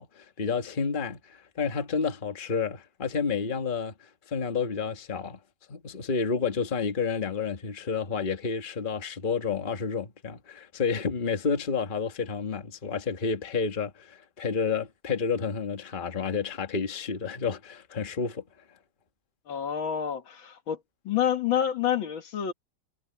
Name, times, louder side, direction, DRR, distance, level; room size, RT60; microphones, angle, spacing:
voice 1, 0.0-3.9 4.3-5.4 5.7-18.4, left 5 dB, 25° left, 1.6 m, -30 dB
voice 2, 19.5-20.8 21.0-22.5, left 9 dB, 70° left, 2.3 m, -28 dB
omnidirectional pair, 2.3 m